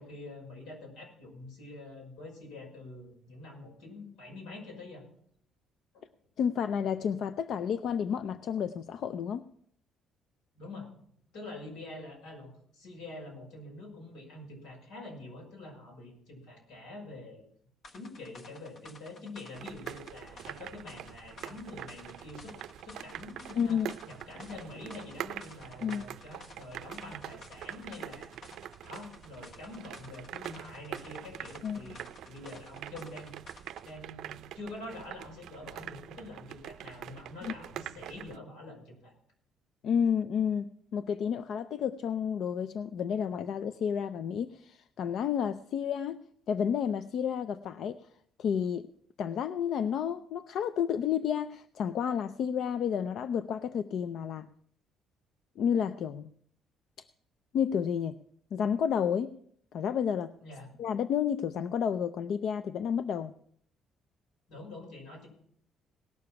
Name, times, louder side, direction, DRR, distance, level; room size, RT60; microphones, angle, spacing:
voice 1, 0.0-5.1 5.9-6.1 10.6-10.9 11.3-17.4 17.9-22.5 22.8-23.8 24.1-28.5 28.8-33.3 33.8-39.1 60.4-60.7 64.5-65.3, left 2 dB, 85° left, 0 dB, 5.8 m, -46 dB
voice 2, 6.4-9.5 23.6-23.9 25.8-26.0 31.6-31.8 37.4-37.5 39.8-46.2 46.5-48.1 48.4-48.9 49.2-54.5 55.6-56.3 57.5-58.2 58.5-59.3 59.7-60.3 60.8-63.3, left 8 dB, 55° left, 12 dB, 0.4 m, -31 dB
sound 1, 17.8-34.0, left 2 dB, 40° left, 1.1 m, -54 dB
sound 2, 19.5-38.4, right 11 dB, 65° right, 0.5 m, -44 dB
18.0 x 6.9 x 5.8 m, 0.65 s
cardioid pair, 150°, 0 cm